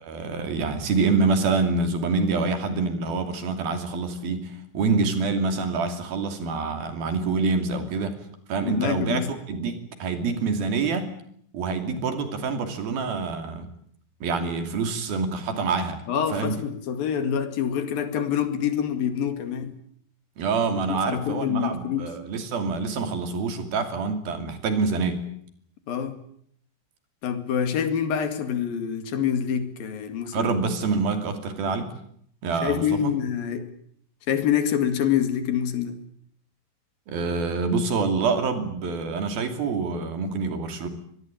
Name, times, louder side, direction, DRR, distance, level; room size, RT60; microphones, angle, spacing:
voice 1, 0.0-8.2 8.5-9.2 9.5-11.1 11.5-13.7 14.2-16.0 16.3-16.5 20.4-25.2 30.3-31.9 32.4-33.1 37.1-40.9, right 4 dB, 80° right, 7 dB, 4.7 m, -26 dB
voice 2, 8.6-9.3 16.1-19.7 21.1-22.1 25.9-26.1 27.2-30.6 32.6-33.7 34.3-36.0, left 8 dB, 75° left, 9 dB, 3.9 m, -26 dB
24.5 x 20.0 x 9.1 m, 0.66 s
omnidirectional pair, 4.2 m